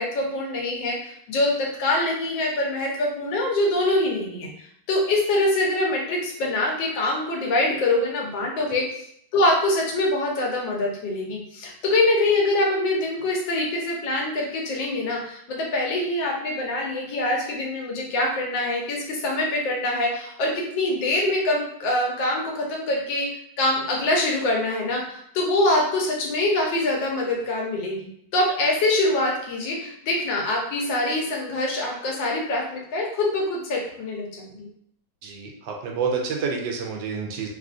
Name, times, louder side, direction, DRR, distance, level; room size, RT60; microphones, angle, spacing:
voice 1, 0.0-4.5 4.9-9.0 9.3-23.3 23.6-34.7, left 2 dB, 85° left, -1 dB, 1.4 m, -24 dB
voice 2, 35.2-37.5, right 5 dB, 80° right, 1 dB, 1.2 m, -28 dB
3.4 x 2.4 x 2.5 m, 0.69 s
omnidirectional pair, 2.0 m